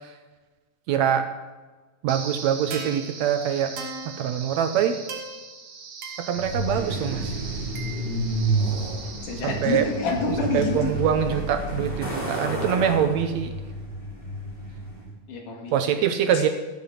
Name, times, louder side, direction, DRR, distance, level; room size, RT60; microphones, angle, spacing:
voice 1, 0.9-1.3 2.0-3.8 4.1-5.0 6.2-7.4 9.4-9.9 10.5-13.5 15.7-16.5, right 9 dB, 75° right, 8 dB, 1.8 m, -24 dB
sound 1, 2.1-11.1, right 4 dB, 60° right, 2.7 m, -39 dB
Truck, 6.4-15.1, right 2 dB, 15° left, 3.0 m, -30 dB
voice 2, 9.2-10.9 15.3-15.8 16.3-16.4, left 3 dB, 80° left, 1 dB, 3.5 m, -27 dB
14.0 x 7.8 x 5.8 m, 1.3 s
omnidirectional pair, 3.6 m